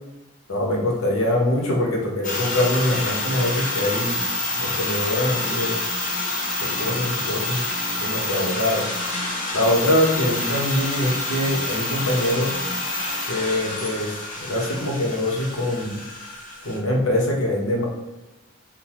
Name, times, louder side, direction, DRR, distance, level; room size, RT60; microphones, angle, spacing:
voice 1, 0.5-4.2 4.5-5.8 6.6-7.6 8.0-8.8 9.5-12.5 13.3-16.0 16.6-17.9, left 1 dB, 85° left, -1 dB, 1.1 m, -23 dB
sound 1, 2.2-16.8, left 2 dB, 40° left, 0.7 m, -27 dB
5.6 x 2.5 x 3.0 m, 1.0 s
head